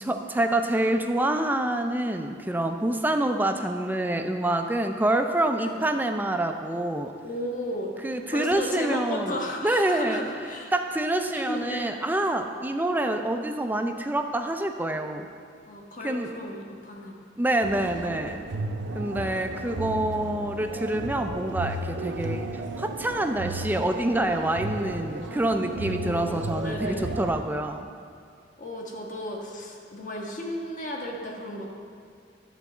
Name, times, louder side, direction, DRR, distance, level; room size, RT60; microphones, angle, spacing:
voice 1, 0.0-7.1 8.0-9.4 9.6-15.3 16.0-16.3 17.4-18.4 18.9-27.9, right 1 dB, 10° right, 6 dB, 0.4 m, -27 dB
voice 2, 7.2-7.9 8.3-10.7 11.5-11.9 15.7-17.1 25.8-27.2 28.6-31.7, left 1 dB, 45° left, 0 dB, 1.2 m, -34 dB
sound 1, 17.6-27.3, right 2 dB, 70° right, 0.6 m, -34 dB
10.5 x 4.0 x 7.2 m, 2.3 s
head